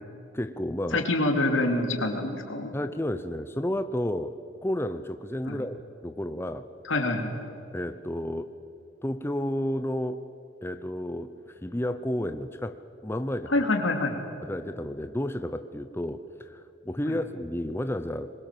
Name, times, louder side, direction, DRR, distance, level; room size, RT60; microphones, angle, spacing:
voice 1, 0.3-1.0 2.7-6.6 7.7-8.5 9.0-10.2 10.6-13.5 14.4-18.3, left 1 dB, 10° left, 10 dB, 0.7 m, -31 dB
voice 2, 0.9-2.7 5.5-5.6 6.8-7.4 13.5-14.2 17.1-17.2, left 2 dB, 90° left, 4 dB, 3.0 m, -26 dB
25.5 x 22.0 x 7.6 m, 2.8 s
head